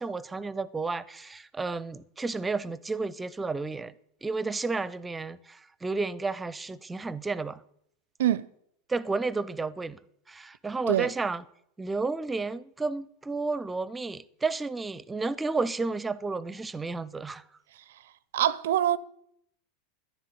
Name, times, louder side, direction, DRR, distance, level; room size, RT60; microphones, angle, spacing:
voice 1, 0.0-3.9 4.2-7.6 8.9-10.0 10.3-11.4 11.8-17.4, right 3 dB, 15° right, 0.6 m, -32 dB
voice 2, 18.3-19.0, right 11 dB, 60° right, 0.5 m, -24 dB
11.0 x 7.6 x 9.1 m
figure-of-eight pair, 85°, 0 cm